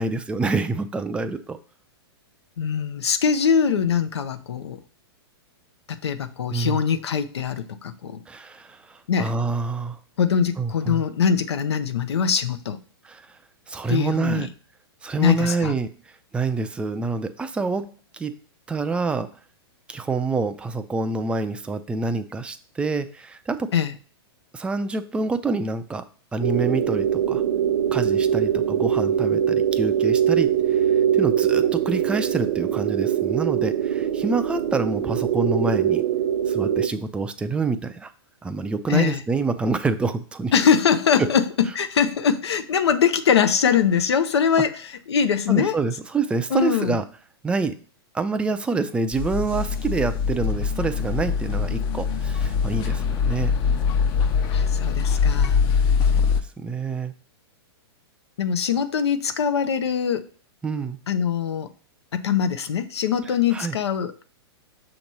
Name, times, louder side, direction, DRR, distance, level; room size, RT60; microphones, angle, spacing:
voice 1, 0.0-1.6 6.5-6.8 8.3-10.0 10.6-11.0 13.0-13.2 13.7-14.5 15.0-15.9 16.3-18.3 18.7-19.3 19.9-23.7 24.5-26.1 26.3-27.4 27.9-30.8 31.1-36.0 36.5-38.1 38.4-40.5 41.2-41.3 45.5-47.1 47.4-47.8 48.1-53.5 55.8-55.9 56.2-57.1 60.6-61.0 63.5-63.8, right 4 dB, 10° right, 0.4 m, -27 dB
voice 2, 2.6-4.8 5.9-8.2 9.1-9.3 10.2-12.8 13.9-14.5 15.2-15.7 23.7-23.9 38.9-39.2 40.5-44.8 45.1-45.8 46.5-47.0 54.5-55.6 58.4-60.3 61.1-61.7 62.1-64.2, left 7 dB, 80° left, 0.6 m, -22 dB
sound 1, 26.4-36.9, right 9 dB, 65° right, 0.7 m, -22 dB
sound 2, 49.1-56.4, left 6 dB, 35° left, 0.6 m, -23 dB
6.3 x 3.0 x 5.3 m
hypercardioid pair, 125°, 14 cm